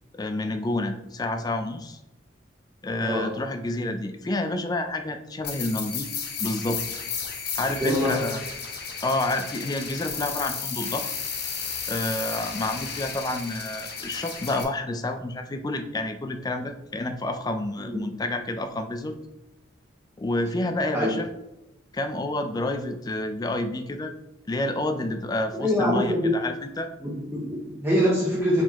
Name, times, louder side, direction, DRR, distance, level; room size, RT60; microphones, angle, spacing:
voice 1, 0.1-2.0 2.8-7.0 7.6-8.4 9.0-11.1 11.9-19.2 20.2-21.3 21.9-24.1 24.5-26.9, left 2 dB, 20° left, 7 dB, 0.3 m, -29 dB
voice 2, 3.0-3.3 7.8-8.2 17.8-18.0 20.9-21.1 25.5-26.3 27.0-28.6, equal, 10° right, -5 dB, 0.7 m, -24 dB
sound 1, 5.4-14.6, left 6 dB, 55° left, 0.7 m, -33 dB
4.4 x 4.0 x 2.9 m, 0.92 s
head